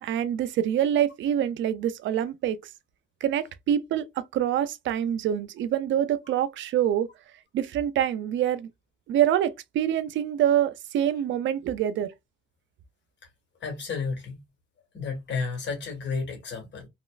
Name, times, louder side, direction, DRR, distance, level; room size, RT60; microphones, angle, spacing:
voice 1, 0.0-2.6 3.2-7.1 7.5-8.7 9.1-12.1, right 10 dB, 75° right, 0.5 m, -25 dB
voice 2, 13.6-14.4 14.9-16.9, left 4 dB, 65° left, 1.8 m, -32 dB
3.0 x 2.9 x 2.3 m
cardioid pair, 90°, 20 cm